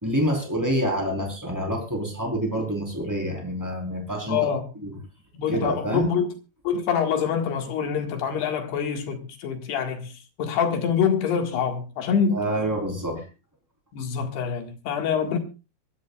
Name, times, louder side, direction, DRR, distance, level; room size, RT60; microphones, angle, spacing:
voice 1, 0.0-4.4 4.8-4.9 5.5-6.1 12.3-13.2, equal, 5° right, 3.8 m, -27 dB
voice 2, 4.3-4.6 5.3-6.3 6.7-10.1 10.4-12.4 13.9-15.4, left 7 dB, 75° left, 3.9 m, -25 dB
24.5 x 13.0 x 2.5 m
omnidirectional pair, 4.9 m